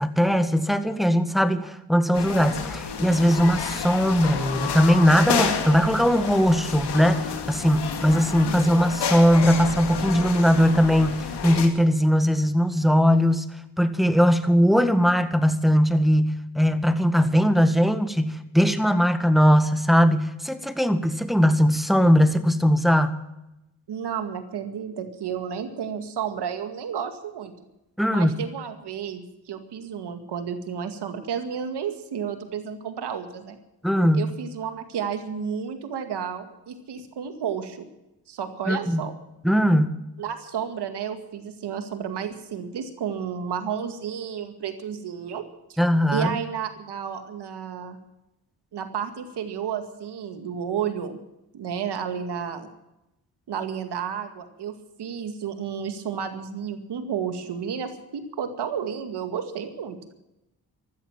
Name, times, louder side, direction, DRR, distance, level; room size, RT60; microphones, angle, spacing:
voice 1, 0.0-13.4 13.8-23.2 28.0-28.4 33.8-34.3 38.7-39.1 39.4-40.0 45.8-46.3, equal, ahead, 9 dB, 1.7 m, -20 dB
sound 1, 2.1-11.7, left 6 dB, 90° left, 2.4 m, -30 dB
voice 2, 23.9-27.5 28.1-33.6 34.1-37.8 38.3-39.1 40.2-45.4 46.1-48.0 48.7-51.2 51.5-52.7 53.5-60.0, right 7 dB, 85° right, 7 dB, 2.2 m, -32 dB
15.0 x 13.0 x 7.4 m, 0.91 s
cardioid pair, 65°, 39 cm